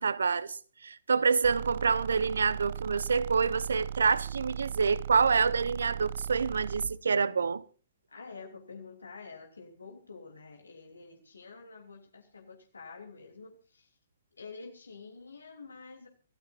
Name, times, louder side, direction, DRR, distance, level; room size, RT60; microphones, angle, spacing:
voice 1, 0.0-7.6, right 5 dB, 75° right, 1.0 m, -27 dB
sound 1, 1.4-7.0, right 10 dB, 55° right, 0.6 m, -38 dB
voice 2, 8.1-14.0 14.4-16.1, left 4 dB, 80° left, 3.2 m, -48 dB
27.0 x 13.5 x 2.6 m
figure-of-eight pair, 125°, 0 cm